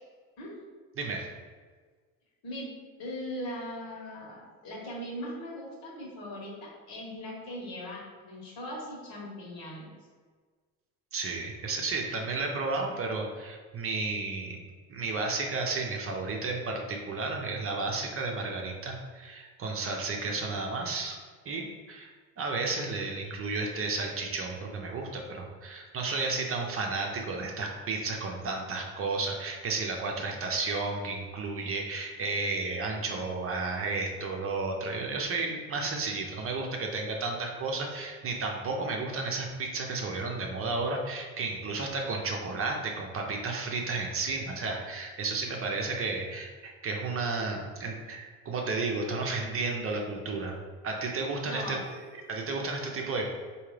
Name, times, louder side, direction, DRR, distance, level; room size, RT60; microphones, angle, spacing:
voice 1, 1.0-1.3 11.1-14.6 14.9-21.2 21.5-22.1 22.4-50.5 50.8-53.3, right 3 dB, 35° right, 1 dB, 0.6 m, -32 dB
voice 2, 2.4-2.7 3.0-9.9 51.4-51.8, left 1 dB, 65° left, -3 dB, 1.5 m, -39 dB
3.7 x 2.8 x 3.2 m, 1.5 s
supercardioid pair, 90°, 40 cm